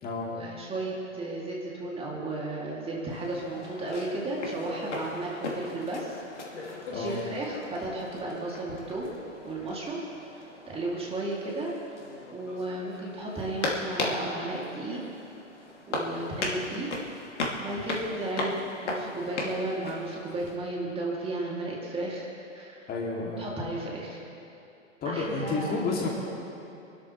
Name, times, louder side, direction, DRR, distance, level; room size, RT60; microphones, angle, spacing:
voice 1, 0.3-6.2 6.5-9.1 9.4-10.0 10.3-12.0 12.3-15.0 15.9-16.9 17.6-18.6 18.8-22.3 22.5-22.8 23.4-24.2 25.0-25.8, right 2 dB, 15° right, -4 dB, 2.5 m, -34 dB
sound 1, 3.1-20.6, left 2 dB, 65° left, 2.5 m, -37 dB
voice 2, 22.9-23.4 25.0-26.1, left 3 dB, 25° left, -3 dB, 2.5 m, -30 dB
26.5 x 12.5 x 3.2 m, 2.7 s
figure-of-eight pair, 105°, 38 cm